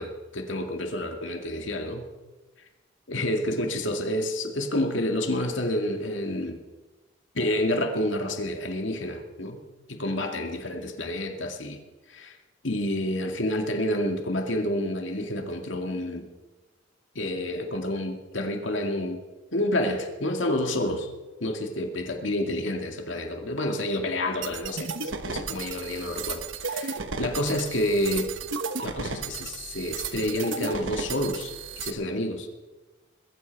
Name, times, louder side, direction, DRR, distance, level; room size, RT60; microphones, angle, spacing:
voice 1, 0.0-2.1 3.1-6.6 7.3-9.6 9.9-11.8 12.1-12.4 12.6-16.3 17.2-19.2 19.5-21.1 21.4-24.9 25.3-28.3 28.8-32.5, left 1 dB, 75° left, 4 dB, 2.1 m, -29 dB
sound 1, 24.4-31.9, right 5 dB, 80° right, 1.1 m, -34 dB
21.0 x 14.0 x 4.6 m, 1.2 s
head